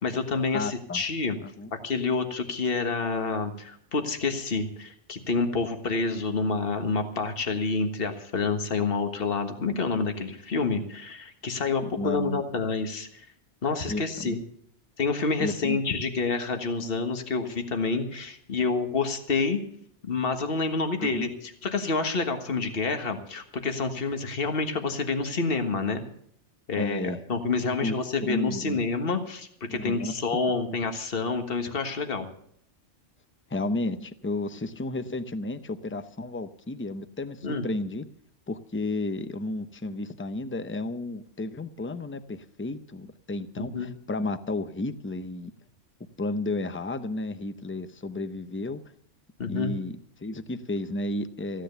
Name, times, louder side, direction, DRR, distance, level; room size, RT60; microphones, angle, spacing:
voice 1, 0.0-1.3 1.8-13.2 13.6-14.4 15.0-19.6 20.0-26.0 26.7-32.3 37.4-37.6 43.6-43.9 49.4-49.7, left 4 dB, 50° left, 6 dB, 1.7 m, -28 dB
voice 2, 0.5-1.0 1.4-1.7 11.8-12.4 13.9-14.4 15.4-15.8 21.0-21.3 26.8-27.2 27.8-28.0 28.2-28.8 29.7-30.1 33.5-38.1 38.5-45.5 46.2-48.8 49.5-51.6, left 2 dB, 15° left, 11 dB, 0.6 m, -32 dB
15.5 x 10.0 x 6.8 m, 0.67 s
omnidirectional pair, 1.2 m